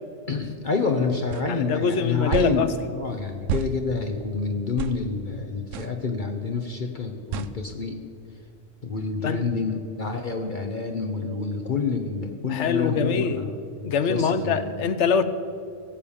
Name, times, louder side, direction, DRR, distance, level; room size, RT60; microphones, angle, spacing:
voice 1, 0.3-8.0 8.8-14.8, left 4 dB, 45° left, 4 dB, 0.9 m, -28 dB
sound 1, 1.3-1.5 2.3-2.6 3.5-3.7 4.8-5.0 5.7-5.9 7.3-7.5, right 9 dB, 85° right, 1.0 m, -29 dB
voice 2, 1.5-2.7 9.2-9.4 12.5-13.5 13.8-15.2, left 5 dB, 70° left, 12 dB, 1.0 m, -24 dB
17.0 x 7.3 x 7.1 m, 2.5 s
omnidirectional pair, 1.3 m